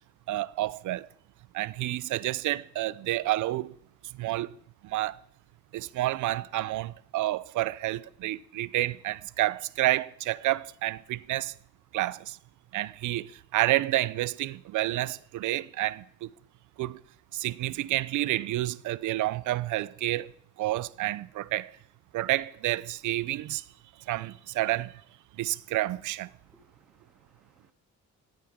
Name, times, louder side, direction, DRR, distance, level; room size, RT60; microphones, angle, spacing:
voice 1, 0.3-1.1 1.5-3.7 4.1-4.5 4.8-5.2 5.7-11.5 11.9-12.4 12.7-16.3 16.8-17.0 17.3-20.3 20.6-21.7 22.1-23.6 24.1-24.9 25.4-26.3, right 16 dB, 80° right, 0.6 m, -29 dB
voice 2, 26.4-27.7, equal, ahead, 2.7 m, -66 dB
18.5 x 15.0 x 3.7 m
cardioid pair, 90°, 30 cm